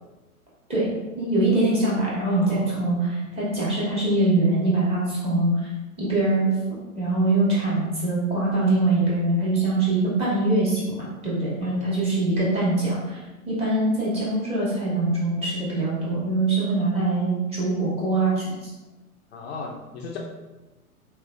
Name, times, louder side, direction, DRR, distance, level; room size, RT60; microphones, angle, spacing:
voice 1, 1.2-5.5 6.0-6.5 6.9-13.2 13.5-18.5, right 2 dB, 15° right, -8 dB, 1.2 m, -23 dB
voice 2, 2.3-2.8 11.6-11.7 19.3-20.2, left 4 dB, 45° left, -1 dB, 0.5 m, -36 dB
3.2 x 3.1 x 2.4 m, 1.1 s
hypercardioid pair, 115°, 45 cm